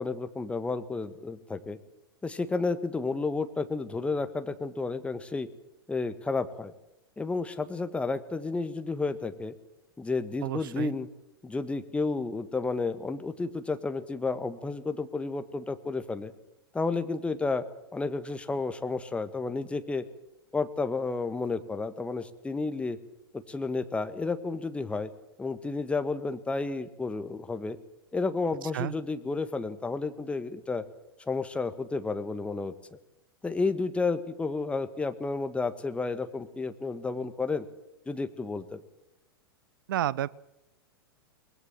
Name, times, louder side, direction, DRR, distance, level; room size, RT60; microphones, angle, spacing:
voice 1, 0.0-1.8 2.2-5.5 5.9-6.7 7.2-9.5 10.0-11.1 11.4-16.3 16.7-17.6 17.9-20.0 20.5-23.0 23.3-25.1 25.4-27.8 28.1-30.8 31.3-32.7 33.4-37.6 38.1-38.8, left 3 dB, 10° left, 10 dB, 1.6 m, -31 dB
voice 2, 10.4-10.9 28.6-28.9 39.9-40.3, right 12 dB, 60° right, 22 dB, 0.8 m, -31 dB
23.0 x 20.5 x 7.4 m, 0.88 s
figure-of-eight pair, 100°, 13 cm